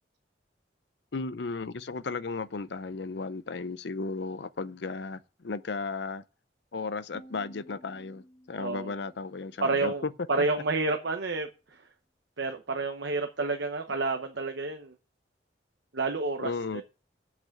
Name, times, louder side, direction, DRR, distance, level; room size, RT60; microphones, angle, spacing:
voice 1, 1.1-6.2 6.7-10.1 10.4-10.5 16.4-16.8, left 4 dB, 65° left, 0.6 m, -35 dB
sound 1, 7.1-10.1, equal, 25° left, 1.8 m, -54 dB
voice 2, 8.6-8.9 9.6-11.8 12.4-14.9 15.9-16.8, right 3 dB, 75° right, 0.9 m, -30 dB
7.8 x 6.1 x 7.1 m
head